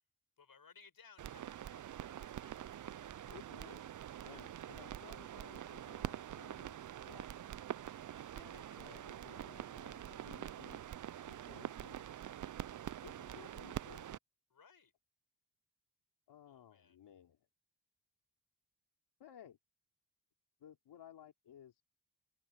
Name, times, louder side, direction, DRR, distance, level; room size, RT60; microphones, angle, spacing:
voice 1, 0.4-2.7 4.3-4.4 8.1-8.8 14.5-14.9 16.5-17.0, left 5 dB, 60° left, 6.0 m, -63 dB
sound 1, 1.2-14.2, right 11 dB, 50° right, 0.6 m, -46 dB
voice 2, 3.3-3.8 4.2-7.3 8.3-10.8 11.3-12.1 13.0-14.2 16.3-17.4 19.2-19.6 20.6-21.8, left 10 dB, 85° left, 3.7 m, -58 dB
supercardioid pair, 45°, 40 cm